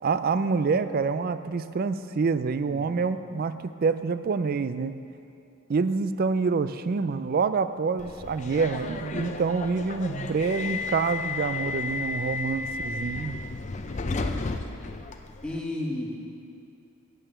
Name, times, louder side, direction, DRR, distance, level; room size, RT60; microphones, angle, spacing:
voice 1, 0.0-5.0 5.7-13.4, right 4 dB, 45° right, 12 dB, 0.3 m, -27 dB
voice 2, 2.7-3.2 14.0-14.4 15.4-16.2, left 1 dB, 5° left, -3 dB, 1.3 m, -34 dB
Subway metro underground, 8.0-15.6, left 4 dB, 35° left, 0.5 m, -33 dB
8.8 x 8.6 x 6.8 m, 2.7 s
head